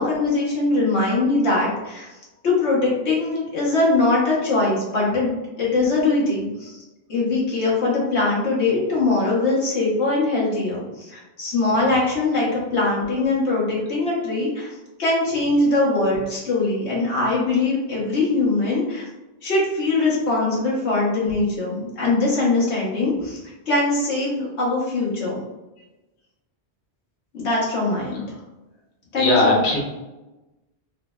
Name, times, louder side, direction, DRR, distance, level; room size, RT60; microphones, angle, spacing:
voice 1, 0.0-2.1 2.4-6.8 7.1-14.7 15.0-19.0 19.4-25.4 27.3-28.2 29.1-29.6, left 2 dB, 85° left, -5 dB, 1.3 m, -22 dB
voice 2, 29.2-29.8, left 2 dB, 55° left, -4 dB, 0.9 m, -19 dB
3.3 x 3.1 x 2.2 m, 1.0 s
omnidirectional pair, 1.1 m